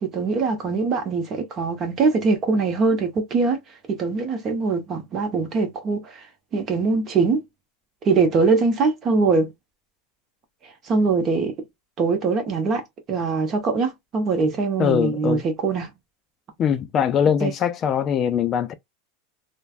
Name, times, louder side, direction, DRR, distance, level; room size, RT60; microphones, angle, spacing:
voice 1, 0.0-3.6 3.9-6.2 6.5-7.4 8.0-9.5 10.9-11.6 12.0-12.8 13.1-16.0 17.4-17.5, right 4 dB, 35° right, 1.1 m, -22 dB
voice 2, 14.8-15.4 16.6-18.7, left 8 dB, 35° left, 0.4 m, -22 dB
3.2 x 2.2 x 2.4 m
supercardioid pair, 135°, 0 cm